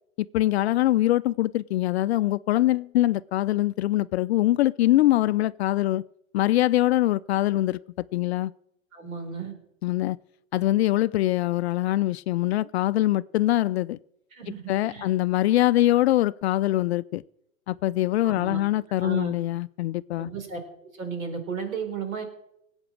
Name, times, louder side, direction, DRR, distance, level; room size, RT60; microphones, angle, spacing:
voice 1, 0.2-6.0 6.3-7.8 8.1-8.5 9.8-10.2 10.5-14.0 14.7-17.2 17.7-20.3, left 15 dB, 50° left, 0.4 m, -23 dB
voice 2, 8.9-9.5 14.3-14.6 14.9-15.1 18.2-18.6 18.9-19.3 20.2-20.6 20.9-22.2, right 5 dB, 75° right, 4.4 m, -34 dB
19.0 x 8.0 x 7.4 m
hypercardioid pair, 115°, 41 cm